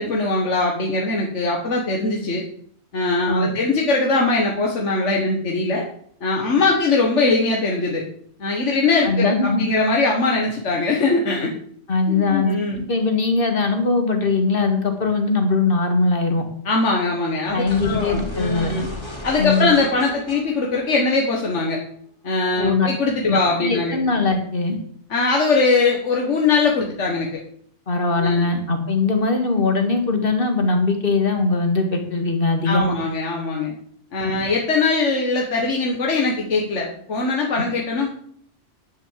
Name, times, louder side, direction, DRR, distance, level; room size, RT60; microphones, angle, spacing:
voice 1, 0.0-2.4 2.9-5.9 6.2-8.0 8.4-11.5 12.1-12.8 16.7-18.9 19.2-21.8 22.2-24.0 25.1-27.4 28.2-28.5 32.7-33.7 34.1-38.1, left 3 dB, 75° left, -1 dB, 1.9 m, -21 dB
voice 2, 9.0-9.6 11.9-12.6 12.9-16.4 17.5-18.7 19.4-19.7 22.6-22.9 23.3-24.8 27.9-33.0 34.2-34.3, left 3 dB, 50° left, 5 dB, 2.1 m, -20 dB
sound 1, 17.7-21.6, left 1 dB, 20° left, 2.7 m, -35 dB
11.0 x 6.8 x 7.4 m, 0.63 s
omnidirectional pair, 1.2 m